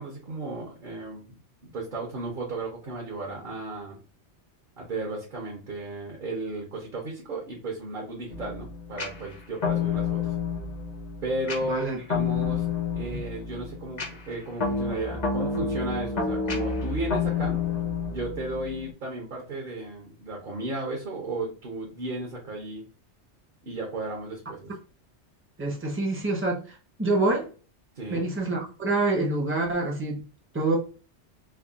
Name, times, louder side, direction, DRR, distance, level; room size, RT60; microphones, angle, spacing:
voice 1, 0.0-1.4 1.6-4.0 4.8-10.3 11.2-17.6 18.1-22.8 23.6-24.7 28.0-28.3, right 2 dB, 50° right, -1 dB, 1.0 m, -34 dB
sound 1, 8.3-18.9, left 5 dB, 40° left, 0.8 m, -29 dB
voice 2, 11.6-12.0 25.6-27.5 28.1-30.2 30.5-30.8, right 2 dB, 15° right, -1 dB, 0.7 m, -26 dB
3.3 x 2.3 x 2.3 m, 0.36 s
omnidirectional pair, 1.2 m